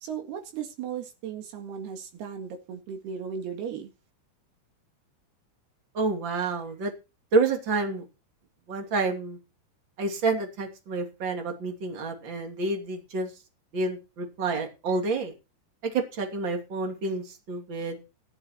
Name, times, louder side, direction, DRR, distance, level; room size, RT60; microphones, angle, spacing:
voice 1, 0.0-3.9, right 7 dB, 80° right, 5 dB, 3.9 m, -36 dB
voice 2, 5.9-6.9 7.3-8.0 8.7-9.4 10.0-13.3 13.7-15.3 15.9-18.0, right 3 dB, 30° right, 3 dB, 3.2 m, -28 dB
16.0 x 9.9 x 4.5 m, 0.30 s
omnidirectional pair, 4.6 m